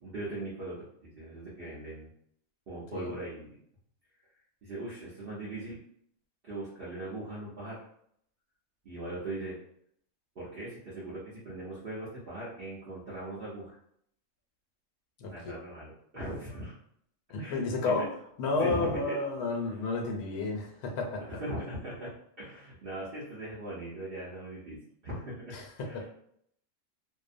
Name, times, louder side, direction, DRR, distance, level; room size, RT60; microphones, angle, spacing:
voice 1, 0.0-2.1 2.7-3.5 4.6-5.8 6.4-7.9 8.8-9.6 10.4-13.8 15.3-16.8 17.4-18.1 18.6-19.2 19.7-19.9 21.2-24.8 25.0-25.6 25.8-26.1, right 1 dB, 50° right, -8 dB, 0.7 m, -40 dB
voice 2, 15.2-15.6 17.3-18.1 18.4-21.2 25.5-25.6 25.9-26.1, left 3 dB, 85° left, 1 dB, 1.1 m, -31 dB
2.7 x 2.1 x 2.5 m, 0.69 s
omnidirectional pair, 1.6 m